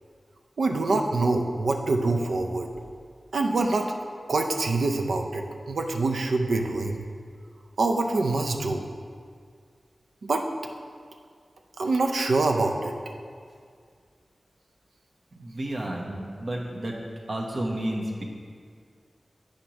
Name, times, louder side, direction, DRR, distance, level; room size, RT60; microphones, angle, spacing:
voice 1, 0.6-2.7 3.3-3.9 4.3-7.0 7.8-8.9 10.2-10.4 11.8-12.9, right 3 dB, 85° right, 4 dB, 0.5 m, -25 dB
voice 2, 15.4-17.0 17.3-18.2, right 1 dB, 55° right, -1 dB, 1.0 m, -31 dB
9.8 x 5.1 x 2.9 m, 2.1 s
wide cardioid pair, 105°, 0 cm